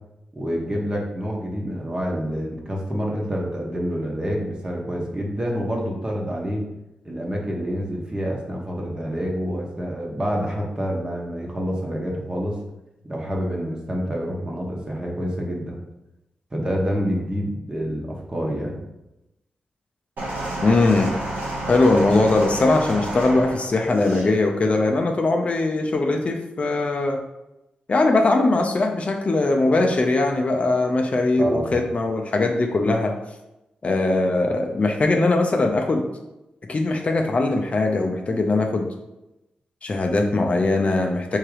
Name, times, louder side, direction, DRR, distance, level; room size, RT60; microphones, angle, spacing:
voice 1, 0.3-6.6 7.0-12.6 13.1-15.8 16.5-18.8 31.4-31.8, equal, 25° right, -1 dB, 1.2 m, -27 dB
sound 1, 20.2-24.3 25.2-25.3, right 1 dB, 85° right, 1.6 m, -30 dB
voice 2, 20.6-21.2 21.7-27.2 27.9-33.2 33.8-36.0 36.7-38.9 39.8-41.4, left 2 dB, 45° left, 3 dB, 0.6 m, -20 dB
3.6 x 3.0 x 4.7 m, 0.93 s
cardioid pair, 65°, 3 cm